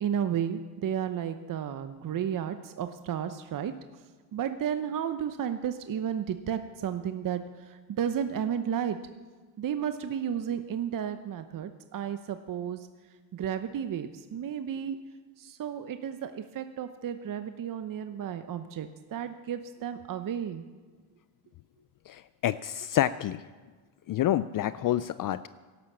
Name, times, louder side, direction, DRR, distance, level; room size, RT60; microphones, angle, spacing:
voice 1, 0.0-3.7 4.3-7.4 7.7-9.0 9.6-12.8 13.3-15.0 15.4-20.6, right 9 dB, 40° right, 9 dB, 0.8 m, -32 dB
voice 2, 22.1-23.4 24.1-25.5, left 12 dB, 45° left, 15 dB, 0.4 m, -28 dB
11.5 x 11.5 x 7.3 m, 1.4 s
cardioid pair, 90°, 49 cm